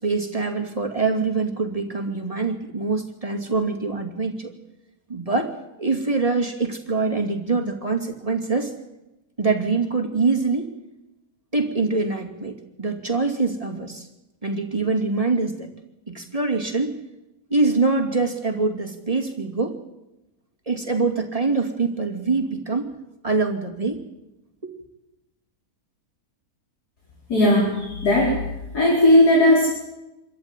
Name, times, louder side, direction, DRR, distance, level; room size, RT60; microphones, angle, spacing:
voice 1, 0.0-4.5 5.1-5.5 5.8-8.7 9.4-10.7 11.5-14.1 14.4-15.7 16.1-17.0 17.5-19.8 20.7-22.9 23.2-24.0 24.6-24.7, right 3 dB, 20° right, 3 dB, 2.6 m, -24 dB
voice 2, 27.3-28.4 28.7-29.7, left 1 dB, 85° left, -3 dB, 5.4 m, -17 dB
26.5 x 14.0 x 9.8 m, 0.94 s
omnidirectional pair, 1.7 m